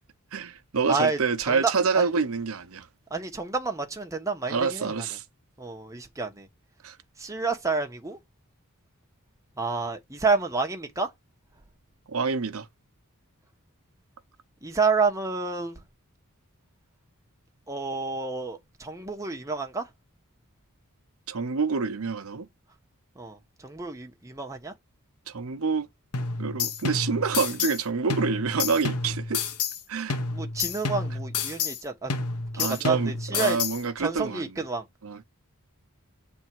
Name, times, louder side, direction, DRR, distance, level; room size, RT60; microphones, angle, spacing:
voice 1, 0.3-2.9 4.5-5.2 6.8-7.0 12.1-12.7 21.3-22.5 25.3-25.9 26.4-29.4 29.9-30.2 32.6-34.5 35.0-35.2, right 5 dB, 65° right, 0.7 m, -27 dB
voice 2, 0.9-1.2 1.5-2.1 3.1-4.9 5.6-6.5 7.2-8.2 9.6-11.1 14.6-15.8 17.7-19.9 23.2-24.7 30.3-32.1 32.5-33.6 34.0-34.8, right 4 dB, 15° right, 1.0 m, -29 dB
sound 1, 26.1-27.8 28.1-29.8 30.1-31.8 32.1-33.8, left 4 dB, 85° left, 1.0 m, -30 dB
7.1 x 3.5 x 4.5 m
head